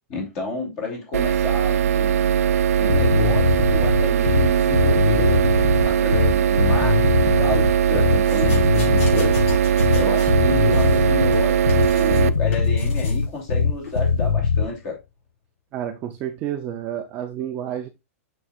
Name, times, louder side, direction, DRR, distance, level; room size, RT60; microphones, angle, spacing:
voice 1, 0.1-2.2 2.8-9.4 9.9-15.0, left 2 dB, 25° left, 2.8 m, -30 dB
sound 1, 1.1-12.3, right 9 dB, 70° right, 0.5 m, -20 dB
sound 2, 2.9-14.7, left 5 dB, 85° left, 1.1 m, -21 dB
sound 3, 8.2-10.4 10.7-12.2 12.5-13.2 13.8-14.0, left 4 dB, 65° left, 4.3 m, -39 dB
voice 2, 15.7-17.9, right 10 dB, 20° right, 0.5 m, -30 dB
6.8 x 6.3 x 2.4 m
hypercardioid pair, 180°, 8 cm